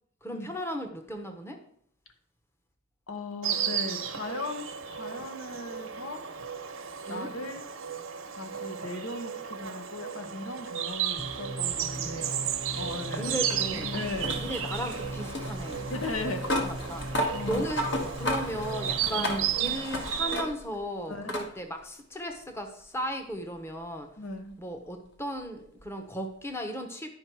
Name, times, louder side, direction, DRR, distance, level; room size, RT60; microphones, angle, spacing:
voice 1, 0.2-1.6 7.1-7.3 11.9-12.4 13.1-13.9 14.4-15.9 16.6-17.9 18.2-24.1 24.6-27.1, equal, 10° left, 5 dB, 0.8 m, -36 dB
voice 2, 3.1-6.2 7.1-7.6 8.4-12.5 12.7-13.5 13.9-14.4 15.9-16.4 17.3-17.7 19.2-19.4 21.1-21.3 24.2-24.6, left 2 dB, 85° left, 6 dB, 1.2 m, -37 dB
Insect, 3.4-20.4, right 9 dB, 85° right, 0.9 m, -34 dB
sound 1, 11.2-19.0, right 1 dB, 25° right, 0.6 m, -39 dB
sound 2, 11.9-20.8 21.3-21.5 22.8-22.9 25.8-25.9, left 1 dB, 60° left, 1.3 m, -35 dB
10.5 x 5.2 x 4.6 m, 0.64 s
head